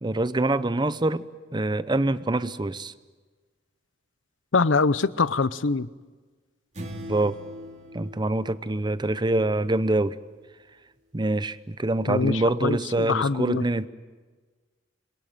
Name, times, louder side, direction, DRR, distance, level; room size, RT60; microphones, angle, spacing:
voice 1, 0.0-1.2 1.5-2.9 7.1-7.4 7.9-10.2 11.1-13.9, right 2 dB, 25° right, 15 dB, 0.7 m, -25 dB
voice 2, 4.5-5.9 12.1-13.6, left 4 dB, 80° left, 17 dB, 0.8 m, -24 dB
sound 1, 6.7-9.4, equal, 40° right, 2.5 m, -41 dB
26.5 x 22.5 x 9.1 m, 1.4 s
head